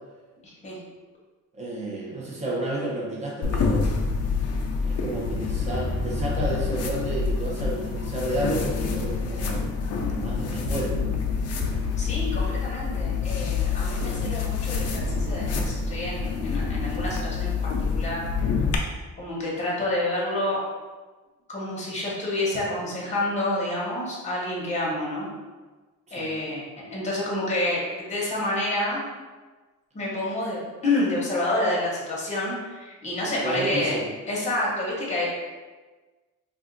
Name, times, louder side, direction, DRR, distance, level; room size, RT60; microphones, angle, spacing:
voice 1, 0.4-0.8 12.0-18.3 19.2-20.6 21.5-25.3 26.1-26.6 26.9-29.0 29.9-34.0 34.3-35.3, left 1 dB, 20° left, -5 dB, 0.9 m, -28 dB
voice 2, 1.5-3.9 4.8-9.6 10.1-10.9 14.0-14.4 26.1-26.3 33.4-34.0, right 1 dB, 20° right, -4 dB, 0.8 m, -31 dB
sound 1, 3.4-18.8, left 5 dB, 50° left, 0.5 m, -27 dB
2.4 x 2.4 x 3.8 m, 1.3 s
cardioid pair, 130°, 32 cm